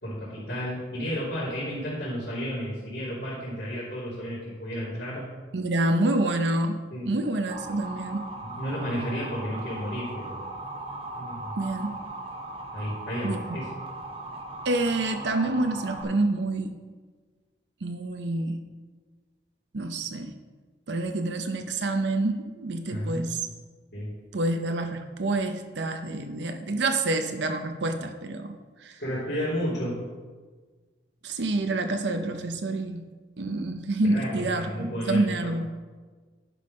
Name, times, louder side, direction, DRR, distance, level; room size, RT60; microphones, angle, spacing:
voice 1, 0.0-5.2 6.9-7.1 8.4-10.4 11.1-11.5 12.7-13.7 22.9-23.4 23.9-24.1 29.0-30.0 34.0-35.5, equal, 70° left, -11 dB, 3.2 m, -32 dB
voice 2, 5.5-8.3 11.6-12.0 13.2-13.4 14.6-16.8 17.8-18.6 19.7-20.3 20.9-23.5 24.3-29.0 31.2-33.0 33.4-35.7, right 2 dB, 75° right, 6 dB, 0.7 m, -27 dB
Motor vehicle (road) / Siren, 7.5-16.0, right 2 dB, 30° right, 1.0 m, -38 dB
11.0 x 5.4 x 5.3 m, 1.4 s
head